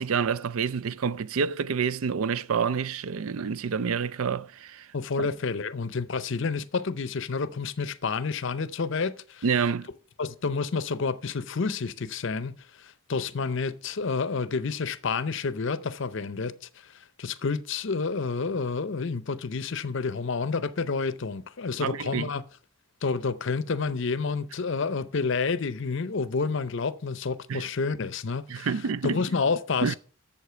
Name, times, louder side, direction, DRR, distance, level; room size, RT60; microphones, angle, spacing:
voice 1, 0.0-4.9 5.2-5.3 9.4-9.9 21.8-22.3 27.5-27.7 28.5-29.2 29.8-30.0, right 6 dB, 70° right, 0.4 m, -28 dB
voice 2, 4.9-9.4 10.2-16.5 17.2-22.4 23.0-28.7 29.0-30.0, left 4 dB, 55° left, 0.6 m, -29 dB
8.2 x 7.3 x 5.7 m
head